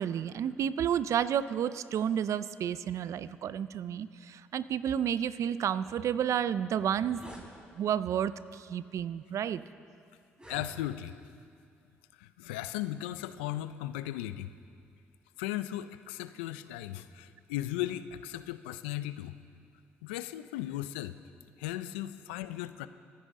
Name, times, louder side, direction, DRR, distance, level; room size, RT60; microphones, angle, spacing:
voice 1, 0.0-7.2 7.8-9.6, right 9 dB, 60° right, 16 dB, 0.5 m, -31 dB
sound 1, 6.8-7.5 8.3-8.6 9.3-9.4 10.2-11.1, right 1 dB, 15° right, 3.7 m, -49 dB
voice 2, 10.5-11.2 12.2-14.5 15.4-19.4 20.0-21.2 21.6-22.9, left 14 dB, 85° left, 13 dB, 0.4 m, -36 dB
25.5 x 10.0 x 3.7 m, 2.3 s
hypercardioid pair, 50°, 6 cm